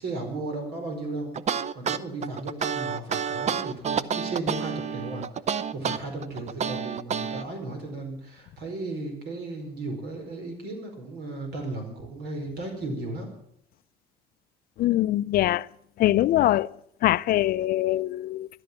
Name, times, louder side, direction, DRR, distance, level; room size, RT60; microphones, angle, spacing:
voice 1, 0.0-1.4 1.7-5.3 5.7-13.3, right 2 dB, 75° right, 4.7 m, -35 dB
sound 1, 1.3-7.4, right 7 dB, 40° right, 0.7 m, -29 dB
voice 2, 14.8-15.7 16.0-16.7 17.0-18.5, left 14 dB, 65° left, 0.5 m, -23 dB
14.0 x 11.5 x 7.4 m
cardioid pair, 110°, 17 cm